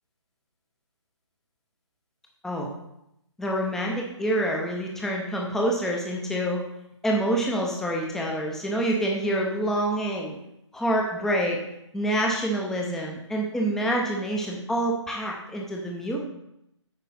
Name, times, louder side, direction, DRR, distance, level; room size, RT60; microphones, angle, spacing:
voice 1, 3.4-6.6 7.0-10.4 10.7-11.6 11.9-16.2, right 1 dB, 5° left, -1 dB, 0.7 m, -27 dB
8.5 x 5.2 x 4.2 m, 0.82 s
figure-of-eight pair, 145°, 16 cm